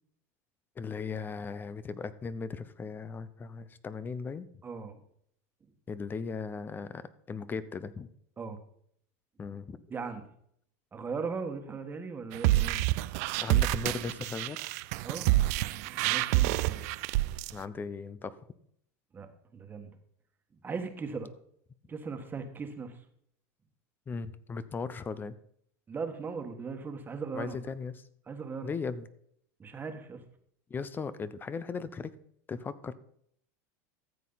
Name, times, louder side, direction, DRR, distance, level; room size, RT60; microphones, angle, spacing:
voice 1, 0.8-4.5 5.9-8.1 9.4-9.8 13.4-14.6 17.5-18.4 24.1-25.4 27.3-28.0 28.6-29.1 30.7-32.2 32.5-32.9, left 5 dB, 20° left, 16 dB, 0.6 m, -37 dB
voice 2, 4.6-5.0 8.4-8.6 9.9-10.3 10.9-12.8 15.0-16.8 19.1-20.0 20.6-21.3 21.9-23.0 25.9-27.6 28.3-28.7 29.6-30.2, right 5 dB, 20° right, 6 dB, 1.5 m, -39 dB
sound 1, 12.3-17.5, right 17 dB, 70° right, 0.4 m, -27 dB
13.5 x 7.4 x 4.0 m, 0.68 s
supercardioid pair, 115°, 9 cm